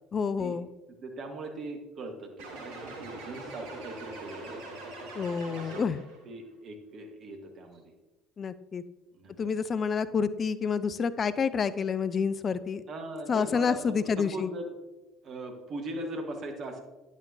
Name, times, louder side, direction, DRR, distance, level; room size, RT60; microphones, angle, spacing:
voice 1, 0.1-0.7 5.2-6.0 8.4-8.8 9.4-12.8 13.3-14.5, left 6 dB, 35° left, 14 dB, 0.4 m, -28 dB
voice 2, 1.0-4.6 5.5-5.8 6.2-7.9 9.1-9.6 12.9-14.6 15.2-16.8, right 1 dB, 45° right, 4 dB, 1.2 m, -40 dB
sound 1, 2.4-6.2, right 2 dB, 65° right, 1.3 m, -42 dB
9.4 x 8.2 x 2.7 m, 1.1 s
figure-of-eight pair, 55°, 0 cm